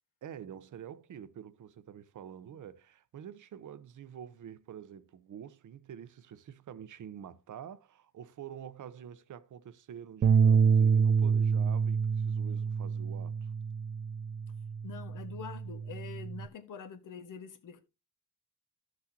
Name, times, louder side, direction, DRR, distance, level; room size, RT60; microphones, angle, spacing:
voice 1, 0.2-13.5, right 9 dB, 70° right, 0.9 m, -47 dB
sound 1, 10.2-16.5, right 6 dB, 35° right, 0.5 m, -27 dB
voice 2, 14.8-17.8, left 6 dB, 75° left, 1.5 m, -45 dB
14.0 x 6.3 x 2.8 m
cardioid pair, 90°, 32 cm